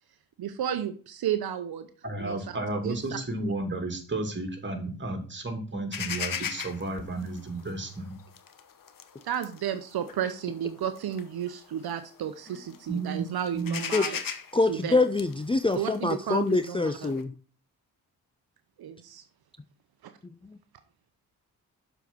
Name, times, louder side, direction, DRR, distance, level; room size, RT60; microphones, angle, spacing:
voice 1, 0.4-1.9 2.2-2.6 2.8-3.0 9.2-14.2 14.7-15.0 15.7-17.2 18.8-19.2 20.0-20.1, right 9 dB, 70° right, 9 dB, 0.9 m, -32 dB
voice 2, 2.0-8.1 12.9-13.2 13.5-13.8, right 2 dB, 30° right, 4 dB, 2.6 m, -32 dB
sound 1, 5.9-12.1 12.5-13.0 13.3-17.2, left 7 dB, 55° left, 1.0 m, -38 dB
voice 3, 14.5-17.3, left 3 dB, 15° left, 9 dB, 0.5 m, -25 dB
6.9 x 5.0 x 6.0 m, 0.39 s
supercardioid pair, 50°, 38 cm